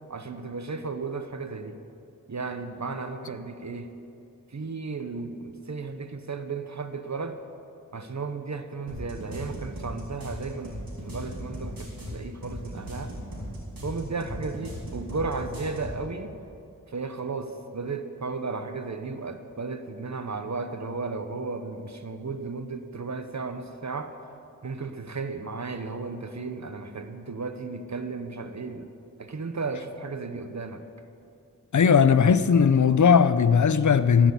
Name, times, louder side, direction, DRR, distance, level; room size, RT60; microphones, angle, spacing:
voice 1, 0.1-1.8 2.3-3.9 4.5-7.4 7.9-13.1 13.8-16.3 16.9-24.1 24.6-28.9 29.2-30.8, right 4 dB, 55° right, 0.9 m, -34 dB
sound 1, 8.9-16.0, equal, 85° right, 3.6 m, -37 dB
voice 2, 31.7-34.3, left 6 dB, 60° left, 0.6 m, -18 dB
15.0 x 6.0 x 8.2 m
wide cardioid pair, 45°, 34 cm